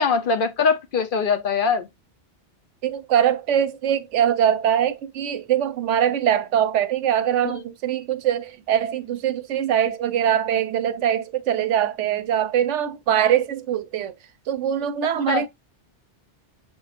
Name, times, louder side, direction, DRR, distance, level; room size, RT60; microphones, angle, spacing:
voice 1, 0.0-1.9 15.3-15.4, left 5 dB, 55° left, 0.7 m, -22 dB
voice 2, 2.8-14.1 14.5-15.5, right 9 dB, 85° right, 1.0 m, -22 dB
7.0 x 3.0 x 2.4 m
omnidirectional pair, 1.2 m